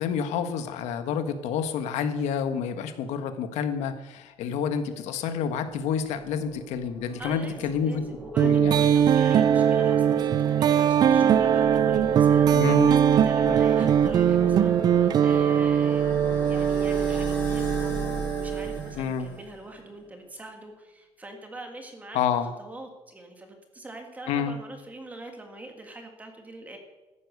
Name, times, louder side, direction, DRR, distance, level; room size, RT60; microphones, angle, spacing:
voice 1, 0.0-8.0 8.4-9.0 12.5-12.9 13.5-13.6 19.0-19.3 22.1-22.5 24.3-24.6, left 7 dB, 85° left, 8 dB, 1.6 m, -29 dB
sound 1, 5.7-19.7, right 1 dB, 15° left, 4.5 m, -39 dB
voice 2, 7.2-26.8, right 1 dB, 15° right, 4 dB, 1.9 m, -43 dB
sound 2, 8.4-18.9, right 8 dB, 35° right, 0.4 m, -21 dB
14.5 x 10.0 x 6.8 m, 1.1 s
cardioid pair, 175°, 11 cm